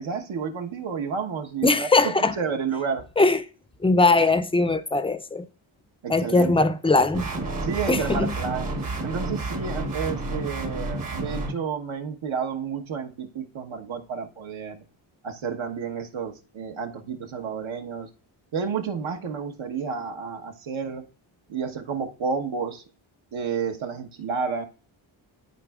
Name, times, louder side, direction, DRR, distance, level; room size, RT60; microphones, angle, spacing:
voice 1, 0.0-3.1 6.0-6.5 7.6-8.7 9.0-14.8 15.2-18.1 18.5-21.1 21.5-22.8 23.3-24.6, right 6 dB, 75° right, 1.2 m, -31 dB
voice 2, 1.6-2.3 3.2-3.4 3.8-5.4 6.1-7.3 7.9-8.3, left 3 dB, 10° left, 0.4 m, -20 dB
sound 1, 7.1-11.5, right 2 dB, 40° right, 1.1 m, -30 dB
12.0 x 4.3 x 2.4 m
wide cardioid pair, 125°, 48 cm